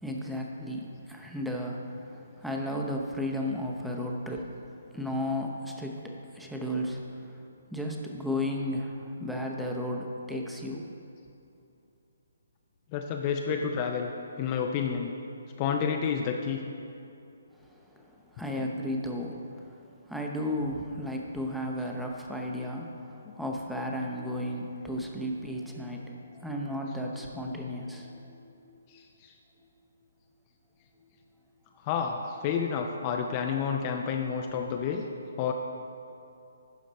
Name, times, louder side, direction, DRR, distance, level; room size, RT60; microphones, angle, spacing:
voice 1, 0.0-4.6 4.9-7.5 7.7-10.9 17.7-28.7, left 1 dB, ahead, 0 dB, 0.8 m, -34 dB
voice 2, 12.9-14.1 14.4-15.1 15.6-16.6 18.6-18.7 28.9-29.3 31.8-35.1 35.4-35.5, left 7 dB, 30° left, 3 dB, 0.5 m, -30 dB
11.5 x 5.1 x 4.1 m, 2.7 s
figure-of-eight pair, 140°, 0 cm